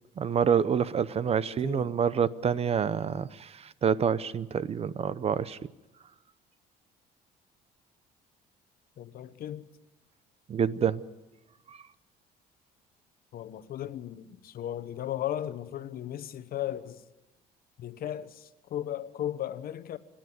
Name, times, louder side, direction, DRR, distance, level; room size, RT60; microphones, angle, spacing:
voice 1, 0.2-5.6 10.5-11.0 11.7-11.8, right 7 dB, 35° right, 0.7 m, -27 dB
voice 2, 1.3-1.9 9.0-9.7 13.3-17.0 17.8-20.0, left 11 dB, 60° left, 1.1 m, -36 dB
27.5 x 10.5 x 9.3 m
cardioid pair, 110°, 17 cm